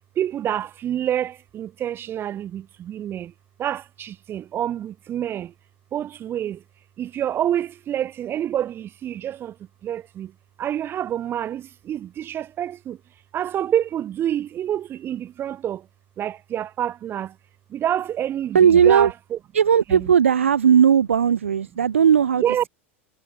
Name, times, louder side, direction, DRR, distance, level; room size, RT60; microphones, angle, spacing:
voice 1, 0.2-3.3 3.6-5.5 5.9-6.6 7.0-9.5 9.8-10.3 10.6-13.0 13.3-15.8 16.2-17.3 17.7-19.1 19.9-20.1 22.4-22.6, right 11 dB, 35° right, 0.8 m, -27 dB
voice 2, 18.5-19.1 19.5-22.7, right 8 dB, 85° right, 0.6 m, -17 dB
hypercardioid pair, 90°, 7 cm